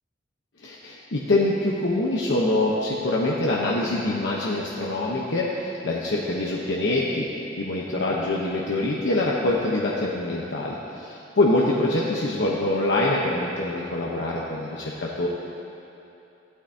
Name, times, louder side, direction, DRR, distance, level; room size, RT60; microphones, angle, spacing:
voice 1, 0.6-7.3 7.6-15.3, left 2 dB, 75° left, -4 dB, 0.9 m, -24 dB
15.0 x 12.0 x 2.8 m, 2.9 s
head